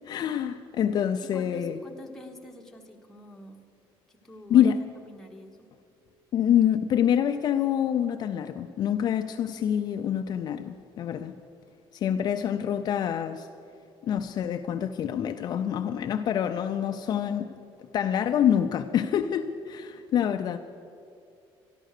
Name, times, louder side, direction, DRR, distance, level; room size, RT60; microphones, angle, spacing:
voice 1, 0.1-1.8 4.5-4.8 6.3-11.4 11.9-13.5 14.0-17.5 17.9-20.6, left 9 dB, 45° left, 0.4 m, -26 dB
voice 2, 1.2-3.6 4.1-4.7 5.0-5.7, left 1 dB, 5° left, 1.2 m, -47 dB
12.5 x 12.0 x 6.6 m
cardioid pair, 155°, 10 cm